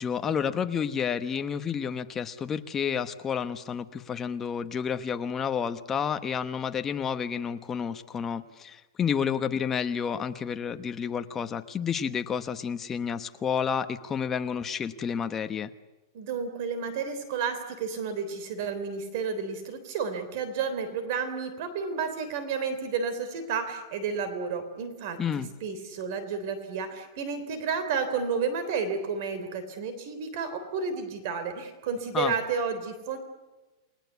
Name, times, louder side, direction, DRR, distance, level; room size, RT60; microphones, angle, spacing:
voice 1, 0.0-15.7 25.2-25.5 32.1-32.3, left 7 dB, 15° left, 9 dB, 1.0 m, -30 dB
voice 2, 16.1-33.2, right 5 dB, 45° right, 10 dB, 3.5 m, -31 dB
29.5 x 20.5 x 8.2 m, 1.2 s
supercardioid pair, 170°, 2 cm